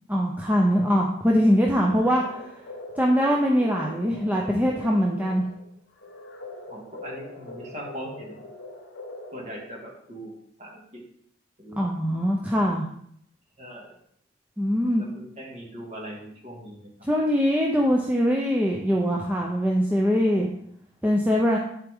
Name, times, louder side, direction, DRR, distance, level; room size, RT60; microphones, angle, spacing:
voice 1, 0.1-2.4 3.0-5.5 11.8-12.9 14.6-15.0 17.0-20.5 21.0-21.6, equal, 10° right, -2 dB, 0.7 m, -22 dB
sound 1, 1.7-10.1, left 2 dB, 65° left, 1.3 m, -42 dB
voice 2, 6.7-8.4 9.3-10.3 10.6-10.8 11.6-11.8 13.6-14.0 15.0-16.9, right 1 dB, 35° right, -2 dB, 2.1 m, -40 dB
11.0 x 4.7 x 3.6 m, 0.68 s
head